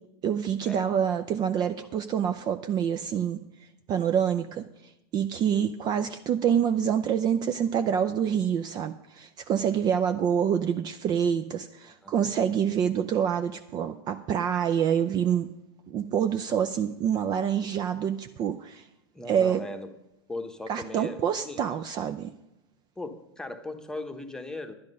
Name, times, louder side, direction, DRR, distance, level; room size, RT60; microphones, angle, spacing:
voice 1, 0.2-3.4 3.9-15.5 15.9-18.9 19.3-19.6 20.7-22.3, right 8 dB, 30° right, 8 dB, 0.5 m, -26 dB
voice 2, 12.0-12.3 19.1-19.9 20.3-21.6 23.0-24.7, left 2 dB, 5° left, 6 dB, 1.0 m, -38 dB
10.5 x 10.5 x 5.4 m, 0.87 s
hypercardioid pair, 125°, 13 cm